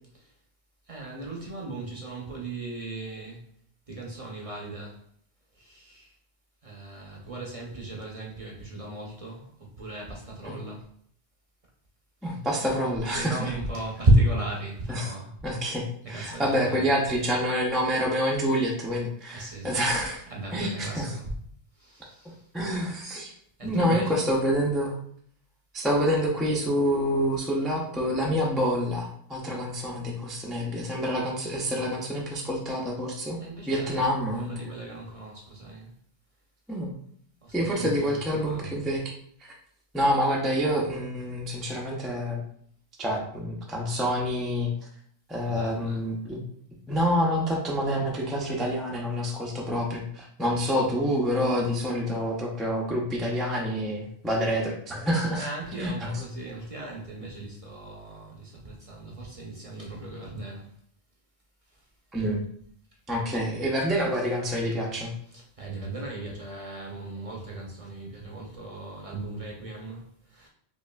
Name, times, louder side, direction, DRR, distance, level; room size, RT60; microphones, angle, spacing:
voice 1, 0.9-3.4 3.9-5.0 5.6-6.1 6.6-9.5 9.8-10.8 12.8-15.3 16.1-17.0 19.3-19.8 20.3-21.3 21.8-22.4 23.6-24.2 33.4-34.1 34.4-35.9 37.4-38.8 45.4-46.0 55.3-60.7 65.3-70.5, right 1 dB, 40° right, -2 dB, 0.6 m, -33 dB
voice 2, 12.2-13.5 14.9-15.1 15.4-20.2 20.5-21.1 22.5-23.3 23.6-24.9 25.7-33.4 33.7-34.5 36.7-37.0 37.5-39.1 39.4-39.5 39.9-42.4 43.0-44.7 45.3-46.4 46.9-56.1 62.1-62.4 63.1-65.1, equal, ahead, -2 dB, 0.3 m, -27 dB
5.2 x 2.5 x 2.2 m, 0.64 s
omnidirectional pair, 1.2 m